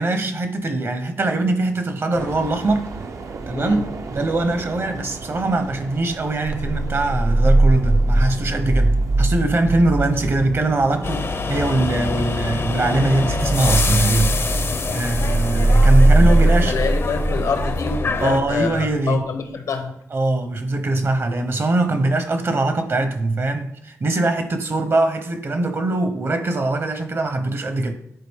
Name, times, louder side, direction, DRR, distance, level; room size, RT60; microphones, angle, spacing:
voice 1, 0.0-2.9 3.5-3.8 4.1-14.6 14.9-16.7 18.2-19.2 20.1-27.9, right 2 dB, 45° right, 0.9 m, -22 dB
sound 1, 2.1-11.3, right 4 dB, 70° right, 0.7 m, -37 dB
sound 2, 6.5-19.1, right 2 dB, 20° right, 0.4 m, -20 dB
sound 3, 11.0-18.4, left 4 dB, 45° left, 0.6 m, -26 dB
voice 2, 16.0-19.9, left 5 dB, 85° left, 1.0 m, -27 dB
10.0 x 4.1 x 3.6 m
cardioid pair, 85°, 6 cm